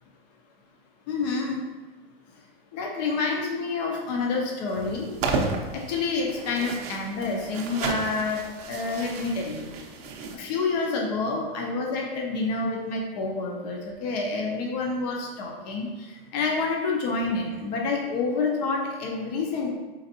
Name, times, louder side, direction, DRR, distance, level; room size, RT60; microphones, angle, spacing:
voice 1, 1.1-1.6 2.7-5.1 5.7-8.4 8.7-9.7 10.3-19.7, left 3 dB, 45° left, 0 dB, 0.7 m, -28 dB
sound 1, 4.7-10.4, right 4 dB, 40° right, 0.5 m, -33 dB
4.3 x 3.9 x 2.7 m, 1.3 s
supercardioid pair, 155°, 30 cm